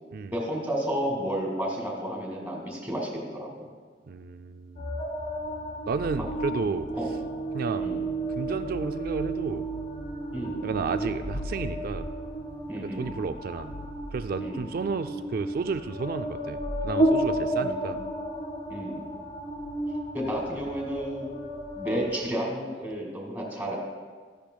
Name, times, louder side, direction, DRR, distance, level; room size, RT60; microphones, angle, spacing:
voice 1, 0.3-3.6 7.0-7.1 7.8-8.0 10.3-10.6 12.7-13.1 14.4-14.7 17.6-18.0 18.7-19.0 20.1-21.3 21.8-23.8, equal, 10° right, -2 dB, 2.1 m, -32 dB
voice 2, 4.1-4.9 5.9-6.9 7.5-7.9 8.4-9.7 10.6-12.1 12.8-13.7 14.1-18.0, right 4 dB, 55° right, 9 dB, 0.4 m, -32 dB
sound 1, 4.8-22.2, equal, 40° left, 1.4 m, -33 dB
sound 2, 6.9-15.3 15.8-15.9, right 5 dB, 85° left, 1.1 m, -36 dB
13.5 x 10.0 x 2.3 m, 1.5 s
head